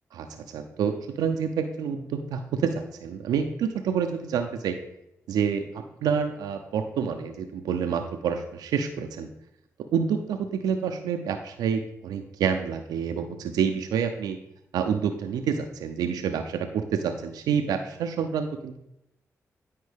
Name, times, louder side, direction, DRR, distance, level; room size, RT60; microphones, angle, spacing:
voice 1, 0.1-0.9 1.2-4.8 5.3-9.3 9.9-14.4 14.7-18.8, right 7 dB, 85° right, 6 dB, 0.4 m, -28 dB
9.6 x 4.4 x 3.4 m, 0.84 s
supercardioid pair, 45°, 7 cm